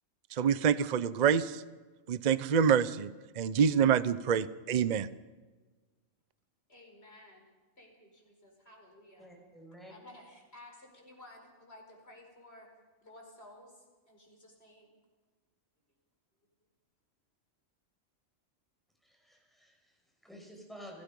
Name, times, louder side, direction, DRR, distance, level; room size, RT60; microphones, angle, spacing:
voice 1, 0.3-1.6 2.1-5.1, right 7 dB, 45° right, 15 dB, 0.7 m, -27 dB
voice 2, 6.7-7.5 7.8-9.3 9.9-12.7 13.0-14.9, left 1 dB, 50° left, 1 dB, 5.1 m, -55 dB
voice 3, 9.2-9.9 19.0-21.0, equal, ahead, -1 dB, 5.9 m, -51 dB
28.5 x 17.5 x 5.4 m, 1.3 s
omnidirectional pair, 1.3 m